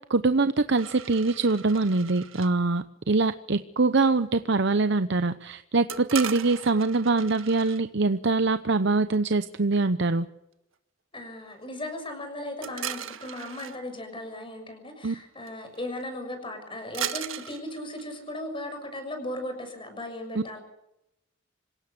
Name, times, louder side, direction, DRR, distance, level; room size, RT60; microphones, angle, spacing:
voice 1, 0.1-10.3 15.0-15.1 20.3-20.4, right 3 dB, 60° right, 11 dB, 0.8 m, -24 dB
sound 1, 0.8-2.5 5.9-7.8 12.6-13.8 15.4-15.5 15.7-16.0 16.9-18.4, right 9 dB, 85° right, 1.6 m, -37 dB
voice 2, 11.1-20.6, left 1 dB, 25° left, 6 dB, 6.5 m, -37 dB
26.5 x 17.0 x 6.8 m, 0.86 s
head